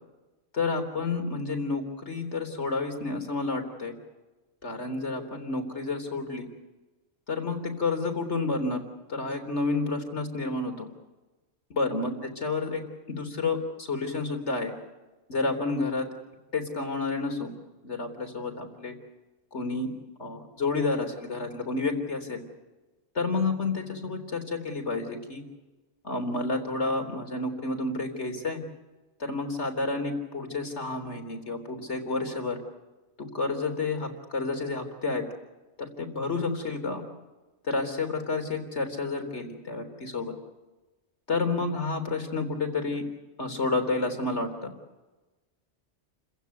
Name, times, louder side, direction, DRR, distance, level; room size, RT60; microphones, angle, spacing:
voice 1, 0.5-4.0 4.6-6.5 7.3-8.8 9.1-10.9 11.7-12.8 13.1-14.7 15.3-16.1 16.5-17.5 17.8-18.9 19.5-19.9 20.2-22.4 23.2-25.4 26.0-28.6 29.2-32.6 33.3-35.2 36.0-37.0 37.6-40.3 41.3-43.0 43.4-44.7, left 3 dB, 70° left, 5 dB, 3.9 m, -30 dB
29.5 x 15.5 x 9.3 m, 1.1 s
omnidirectional pair, 1.2 m